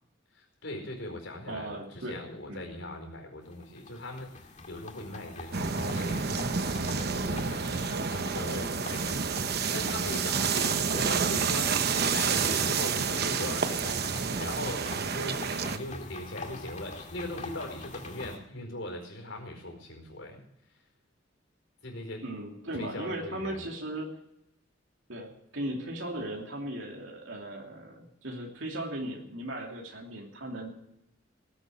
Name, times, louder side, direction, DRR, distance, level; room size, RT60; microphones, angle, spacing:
voice 1, 0.3-7.4 7.8-20.4 21.8-22.2 22.7-23.6, left 1 dB, 75° left, 2 dB, 4.7 m, -40 dB
voice 2, 1.5-2.2 2.5-2.6 22.1-24.1 25.1-30.7, right 1 dB, 80° right, 0 dB, 2.8 m, -37 dB
sound 1, 3.4-18.4, left 3 dB, 40° left, 2.0 m, -44 dB
sound 2, 5.5-15.8, right 5 dB, 55° right, 0.9 m, -29 dB
18.5 x 8.3 x 6.4 m, 0.82 s
head